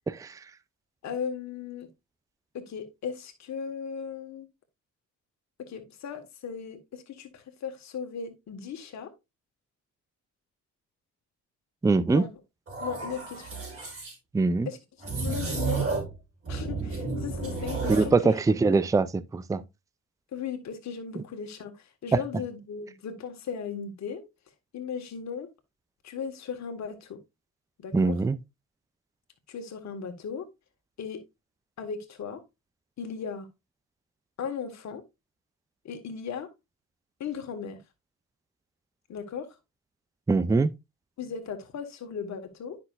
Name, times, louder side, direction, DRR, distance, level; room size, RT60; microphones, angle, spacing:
voice 1, 1.0-1.9 2.5-4.5 5.6-9.1 12.1-12.3 12.8-13.6 14.6-15.9 16.5-18.6 20.3-24.2 24.7-25.5 26.0-27.2 27.8-28.1 29.5-30.5 31.0-31.2 31.8-32.4 33.0-33.5 34.4-35.0 35.8-36.5 37.2-37.8 39.1-39.6 41.2-42.8, left 6 dB, 65° left, 1.7 m, -37 dB
voice 2, 11.8-12.2 14.3-14.7 17.9-19.6 21.2-21.3 22.1-22.2 27.9-28.4 40.3-40.7, right 3 dB, 10° right, 0.4 m, -23 dB
sound 1, 12.7-14.1 15.0-16.2 16.4-18.2, right 4 dB, 45° right, 4.0 m, -32 dB
9.7 x 6.0 x 2.5 m
cardioid pair, 90°, 30 cm